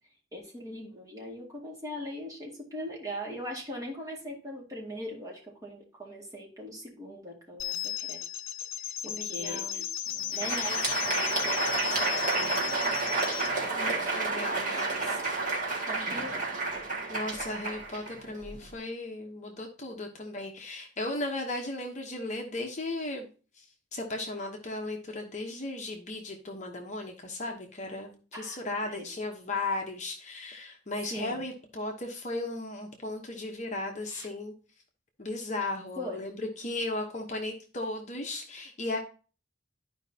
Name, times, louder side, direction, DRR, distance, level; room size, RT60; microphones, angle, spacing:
voice 1, 0.3-8.2 8.8-9.9 10.3-12.6 13.6-15.4 15.9-16.5 28.3-29.1 31.0-31.4 34.1-34.3 36.0-36.2, equal, 15° right, -3 dB, 2.1 m, -41 dB
sound 1, 7.6-13.5, left 11 dB, 80° left, 0.6 m, -35 dB
voice 2, 9.0-9.8 13.7-14.9 17.1-23.3 23.5-23.7 23.9-34.5 35.2-39.0, left 2 dB, 35° left, 2 dB, 1.0 m, -36 dB
Crowd, 10.2-18.7, right 3 dB, 40° right, 1.9 m, -30 dB
12.0 x 5.0 x 2.8 m, 0.36 s
head